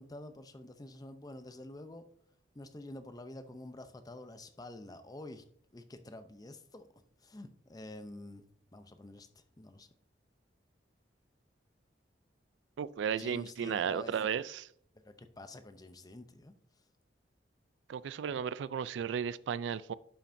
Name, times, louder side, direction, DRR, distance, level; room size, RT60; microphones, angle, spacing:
voice 1, 0.0-2.0 2.5-5.4 5.7-6.8 7.2-8.4 8.7-9.9 13.2-14.1 14.9-16.5, left 1 dB, 20° left, 0.6 m, -48 dB
voice 2, 12.8-14.7 17.9-19.9, right 7 dB, 75° right, 0.3 m, -34 dB
11.5 x 5.7 x 2.6 m
head